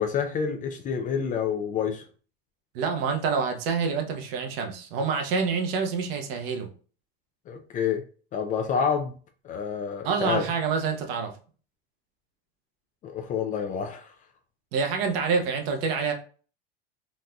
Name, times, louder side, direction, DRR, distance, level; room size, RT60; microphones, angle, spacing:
voice 1, 0.0-2.0 7.5-8.0 8.3-9.2 9.4-10.4 13.0-14.1, left 7 dB, 25° left, 0.3 m, -28 dB
voice 2, 2.7-6.7 10.0-11.3 14.7-16.1, right 5 dB, 75° right, 0.9 m, -27 dB
4.0 x 2.5 x 2.2 m
supercardioid pair, 125°, 30 cm